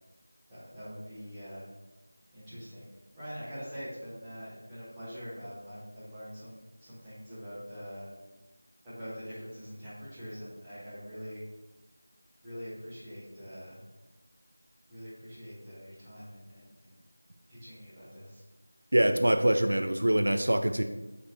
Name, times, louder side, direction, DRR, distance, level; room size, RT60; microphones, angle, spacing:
voice 1, 0.5-1.6 2.3-2.9 3.2-8.1 8.8-11.4 12.4-13.8 14.9-17.0 17.5-18.4, equal, 5° right, -13 dB, 0.9 m, -44 dB
voice 2, 18.9-20.8, right 1 dB, 70° right, 7 dB, 0.3 m, -24 dB
5.0 x 3.9 x 2.6 m, 1.0 s
figure-of-eight pair, 175°, 0 cm